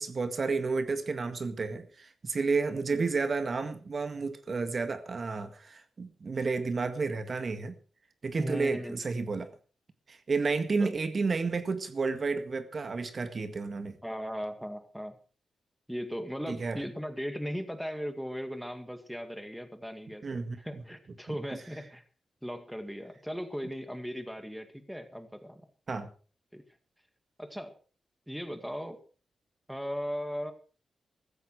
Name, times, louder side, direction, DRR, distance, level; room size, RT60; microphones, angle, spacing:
voice 1, 0.0-7.8 8.2-9.5 10.1-14.0 16.5-16.8 20.2-20.6 21.3-21.4 25.9-26.1, right 4 dB, 45° right, 9 dB, 1.8 m, -31 dB
voice 2, 8.4-9.0 10.8-10.9 14.0-15.2 15.9-22.0 22.4-25.6 26.5-26.6 27.4-27.7 28.3-29.0 29.7-30.5, equal, ahead, 8 dB, 2.1 m, -37 dB
15.5 x 14.5 x 4.8 m, 0.38 s
wide cardioid pair, 105°, 0 cm